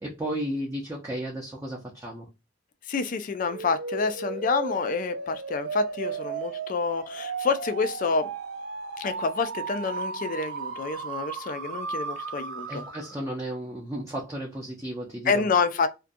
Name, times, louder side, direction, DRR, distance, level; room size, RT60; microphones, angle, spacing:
voice 1, 0.0-2.3 12.7-15.5, right 1 dB, 15° right, 0.5 m, -34 dB
voice 2, 2.9-8.3 9.0-12.9 15.2-15.9, left 4 dB, 40° left, 0.3 m, -28 dB
sound 1, 3.5-13.3, right 4 dB, 65° right, 0.5 m, -35 dB
2.4 x 2.2 x 2.5 m
head